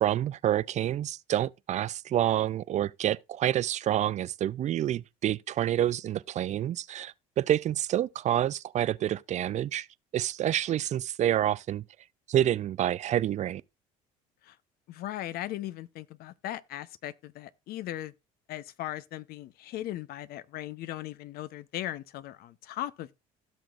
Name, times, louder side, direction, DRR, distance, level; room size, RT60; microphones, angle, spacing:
voice 1, 0.0-9.9 10.1-11.8 12.3-13.6, right 11 dB, 45° right, 0.4 m, -28 dB
voice 2, 14.9-18.1 18.5-23.1, left 14 dB, 65° left, 0.7 m, -38 dB
16.5 x 6.2 x 2.4 m
supercardioid pair, 80°, 17 cm